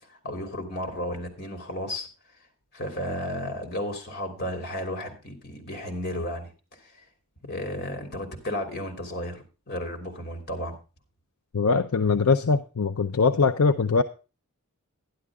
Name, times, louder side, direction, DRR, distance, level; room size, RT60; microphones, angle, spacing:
voice 1, 0.1-2.1 2.7-7.1 7.4-10.8, left 1 dB, 50° left, 4 dB, 3.1 m, -33 dB
voice 2, 11.5-14.0, left 4 dB, 75° left, 7 dB, 0.6 m, -22 dB
11.5 x 11.0 x 3.6 m, 0.32 s
head